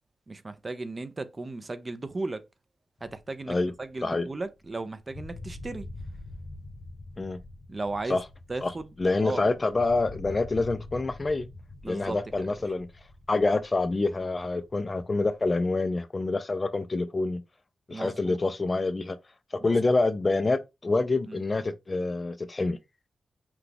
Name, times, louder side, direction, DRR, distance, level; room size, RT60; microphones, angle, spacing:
voice 1, 0.3-2.4 3.0-5.9 7.7-8.2 8.5-8.9 9.2-9.4 11.8-12.5 17.9-18.4 19.6-19.8 21.3-21.4, right 3 dB, 30° right, 0.5 m, -36 dB
sound 1, 3.0-4.8 5.1-15.8, left 2 dB, 50° left, 0.9 m, -45 dB
voice 2, 9.0-11.5 11.8-12.9 13.3-17.4 17.9-19.2 19.6-22.8, left 3 dB, 30° left, 0.4 m, -27 dB
5.9 x 2.3 x 3.3 m
wide cardioid pair, 150°, 0 cm